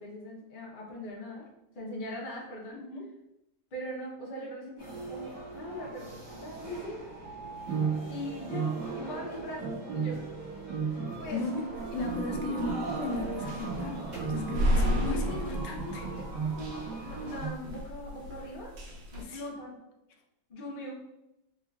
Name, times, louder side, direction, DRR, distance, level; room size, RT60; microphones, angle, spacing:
voice 1, 0.0-1.5 1.7-2.8 3.7-7.0 8.1-10.2 11.2-11.6 14.8-18.7 19.1-19.8 20.5-20.9, left 1 dB, 45° left, -4 dB, 0.6 m, -41 dB
voice 2, 2.7-3.1 11.3-11.6 11.9-14.0 14.3-16.1 19.2-19.4, left 3 dB, 75° left, 3 dB, 1.1 m, -36 dB
sound 1, 4.8-17.5, right 5 dB, 40° right, 1.5 m, -36 dB
sound 2, 11.8-19.2, equal, 75° right, 1.4 m, -34 dB
3.6 x 3.1 x 2.3 m, 0.89 s
omnidirectional pair, 2.1 m